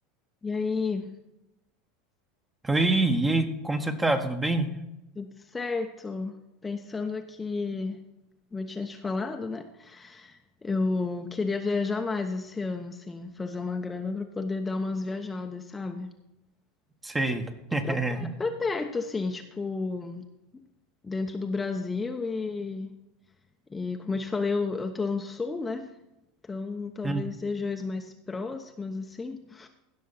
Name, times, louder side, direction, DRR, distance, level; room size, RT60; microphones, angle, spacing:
voice 1, 0.4-1.1 5.1-6.3 6.6-8.0 8.5-16.1 17.8-20.2 21.0-22.9 23.7-25.9 26.4-29.7, left 4 dB, 15° left, 4 dB, 1.0 m, -32 dB
voice 2, 2.6-4.7 17.0-18.3 27.0-27.2, right 2 dB, 15° right, 6 dB, 1.5 m, -26 dB
16.5 x 6.4 x 4.2 m, 0.89 s
hypercardioid pair, 85°, 0 cm